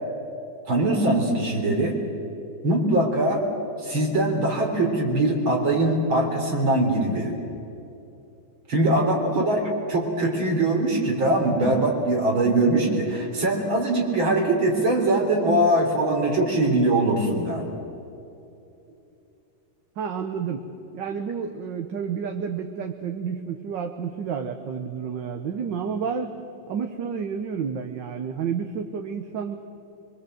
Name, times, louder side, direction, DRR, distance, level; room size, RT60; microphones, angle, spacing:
voice 1, 0.7-2.0 2.6-3.4 3.9-7.3 8.7-9.6 9.9-17.7, right 2 dB, 85° right, 1 dB, 4.4 m, -22 dB
voice 2, 20.0-20.6 20.9-26.3 26.7-29.6, right 6 dB, 65° right, 6 dB, 1.7 m, -30 dB
24.0 x 23.5 x 7.8 m, 2.7 s
omnidirectional pair, 2.1 m